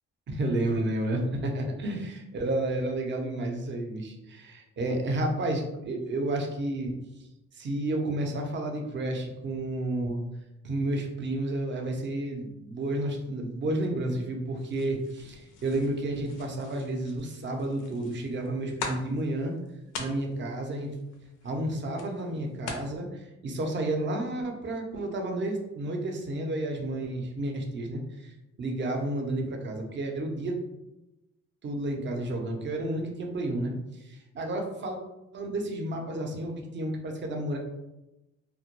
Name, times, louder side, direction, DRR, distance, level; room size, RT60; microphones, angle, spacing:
voice 1, 0.3-6.9 7.5-10.2 10.6-19.5 20.0-20.9 21.4-30.5 31.6-33.7 34.0-35.0 35.3-37.6, right 1 dB, 40° right, 2 dB, 0.5 m, -31 dB
sound 1, 14.6-22.9, left 4 dB, 85° left, 0.5 m, -43 dB
2.2 x 2.1 x 2.8 m, 0.95 s
cardioid pair, 90°, 30 cm